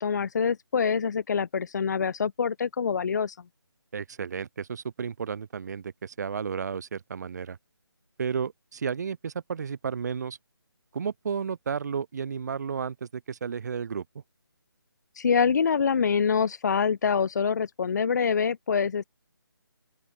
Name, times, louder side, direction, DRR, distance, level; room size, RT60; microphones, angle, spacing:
voice 1, 0.0-3.4 15.2-19.0, left 6 dB, 45° left, 1.2 m, -25 dB
voice 2, 3.9-7.6 8.2-10.4 10.9-14.0, right 6 dB, 45° right, 2.5 m, -32 dB
open air
figure-of-eight pair, 155°, 13 cm